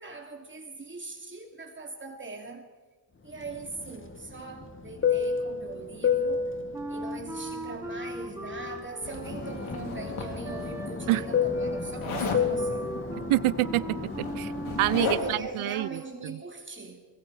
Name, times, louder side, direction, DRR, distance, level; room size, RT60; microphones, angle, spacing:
voice 1, 0.0-2.7 3.2-6.5 6.9-12.9 15.0-17.1, right 3 dB, 25° right, 2.7 m, -40 dB
Fixed-wing aircraft airplane, 3.4-8.8 9.1-15.0, left 6 dB, 25° left, 1.5 m, -31 dB
Wind instrument woodwind instrument, 6.7-15.2, right 1 dB, 5° right, 3.2 m, -40 dB
Zipper (clothing), 9.0-10.7 12.0-12.5 13.6-13.7 14.0-15.5, left 4 dB, 75° left, 3.6 m, -34 dB
voice 2, 13.3-14.5 14.8-16.0, right 17 dB, 80° right, 0.6 m, -26 dB
25.5 x 22.0 x 4.8 m
cardioid pair, 125°, 48 cm